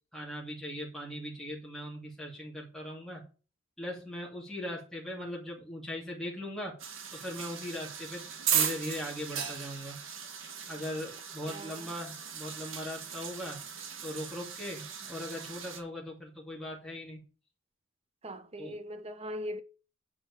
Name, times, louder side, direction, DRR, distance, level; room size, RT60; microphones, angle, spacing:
voice 1, 0.1-3.3 3.8-6.8 7.1-10.0 10.7-13.6 14.0-17.2 18.6-18.7, left 1 dB, ahead, 2.7 m, -39 dB
sound 1, 6.8-15.8, right 8 dB, 80° right, 2.3 m, -37 dB
voice 2, 11.5-12.0 18.2-19.6, equal, 30° right, 1.3 m, -40 dB
10.0 x 5.0 x 6.7 m
head